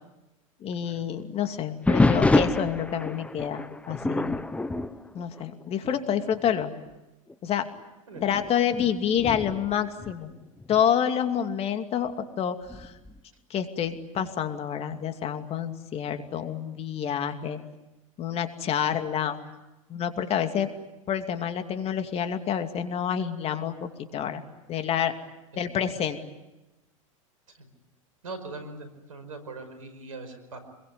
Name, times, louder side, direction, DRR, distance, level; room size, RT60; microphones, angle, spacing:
voice 1, 0.6-4.4 5.1-6.7 7.4-7.6 8.2-10.3 10.7-12.9 13.5-17.6 18.2-19.6 19.9-20.7 21.1-24.4 24.7-25.1 25.6-26.2, left 8 dB, 35° left, 7 dB, 2.6 m, -28 dB
sound 1, 1.9-6.0 6.3-6.7 7.3-7.4 8.1-10.8 12.7-13.2, left 2 dB, 5° left, 1.2 m, -27 dB
voice 2, 28.2-30.6, right 3 dB, 85° right, 9 dB, 5.2 m, -41 dB
26.5 x 22.5 x 9.6 m, 1.0 s
hypercardioid pair, 95°, 17 cm